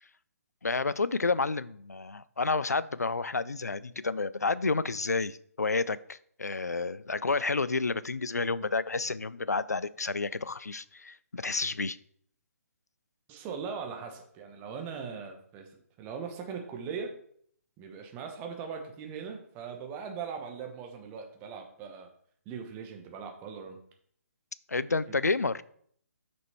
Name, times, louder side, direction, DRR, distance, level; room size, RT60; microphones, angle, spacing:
voice 1, 0.6-12.0 24.7-25.6, left 3 dB, 80° left, 18 dB, 0.4 m, -30 dB
voice 2, 13.3-15.7 16.0-17.2 17.8-22.1 22.4-23.8 24.9-25.2, right 6 dB, 20° right, 4 dB, 1.1 m, -40 dB
6.2 x 6.0 x 4.3 m, 0.63 s
figure-of-eight pair, 135°, 9 cm